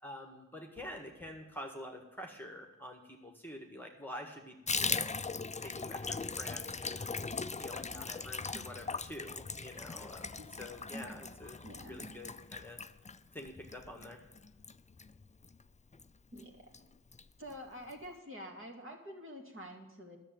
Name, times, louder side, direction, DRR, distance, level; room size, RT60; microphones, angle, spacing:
voice 1, 0.0-7.1 7.6-11.6 11.9-12.8 13.3-14.2, left 1 dB, 5° left, 2 dB, 1.6 m, -47 dB
Water tap faucet / Bathtub (filling or washing), 4.7-15.6 15.9-16.1 16.4-16.5 16.7-17.2 17.5-17.6 17.9-18.0, left 4 dB, 20° left, 0.4 m, -39 dB
voice 2, 10.9-11.3 11.6-12.1 16.3-16.6 17.4-20.2, equal, 40° right, 0 dB, 2.4 m, -47 dB
11.0 x 7.0 x 9.2 m, 1.0 s
wide cardioid pair, 50°, 33 cm